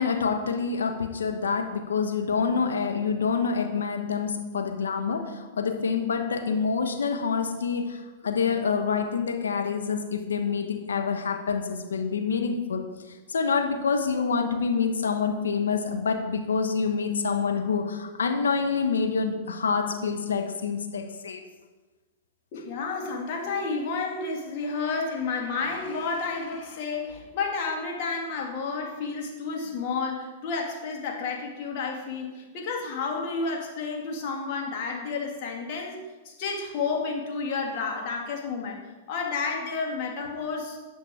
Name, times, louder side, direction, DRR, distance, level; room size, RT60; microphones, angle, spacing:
voice 1, 0.0-5.2 5.5-8.0 8.2-12.8 13.3-21.4, left 5 dB, 85° left, 5 dB, 1.2 m, -27 dB
voice 2, 22.5-36.0 36.2-40.8, left 4 dB, 50° left, 0 dB, 2.3 m, -31 dB
9.4 x 6.0 x 4.9 m, 1.2 s
hypercardioid pair, 115°, 0 cm